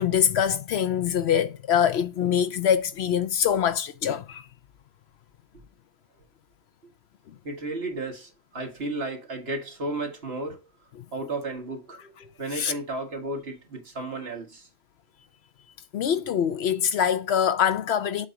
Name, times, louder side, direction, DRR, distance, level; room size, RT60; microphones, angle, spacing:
voice 1, 0.0-4.4 12.6-12.7 15.9-18.3, left 8 dB, 65° left, 0.8 m, -24 dB
voice 2, 7.4-10.6 11.1-14.7, right 2 dB, 55° right, 1.7 m, -33 dB
7.5 x 2.7 x 5.0 m
omnidirectional pair, 1.2 m